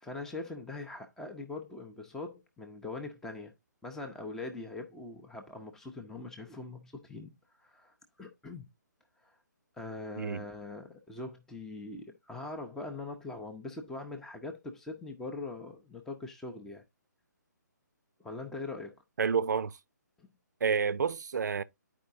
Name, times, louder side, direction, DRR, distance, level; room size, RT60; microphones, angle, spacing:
voice 1, 0.0-3.5 3.8-8.7 9.2-9.3 9.8-16.8 18.2-19.0 20.2-20.3, left 3 dB, 5° left, 0.6 m, -42 dB
voice 2, 19.2-19.8 20.6-21.6, right 6 dB, 65° right, 0.5 m, -29 dB
10.5 x 4.7 x 2.6 m
figure-of-eight pair, 140°, 10 cm